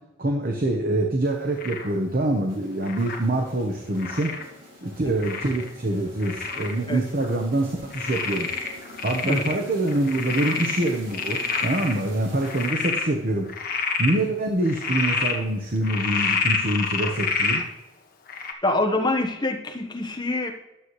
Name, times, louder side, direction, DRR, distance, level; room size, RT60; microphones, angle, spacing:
voice 1, 0.2-4.3 4.8-8.5 9.0-13.5 14.0-17.6, right 1 dB, 50° right, 2 dB, 1.0 m, -25 dB
Frog, 1.6-1.9 2.8-3.2 4.0-4.4 5.2-5.7 6.2-6.7 7.2-7.3 7.9-9.6 9.9-11.9 12.4-13.1 13.5-14.1 14.7-15.4 15.8-17.6 18.3-18.5, left 5 dB, 50° left, 1.2 m, -27 dB
sound 1, 2.5-13.1, equal, 75° right, 4.0 m, -45 dB
voice 2, 18.6-20.5, left 2 dB, 20° left, 2 dB, 1.2 m, -25 dB
12.0 x 7.7 x 3.2 m, 0.94 s
head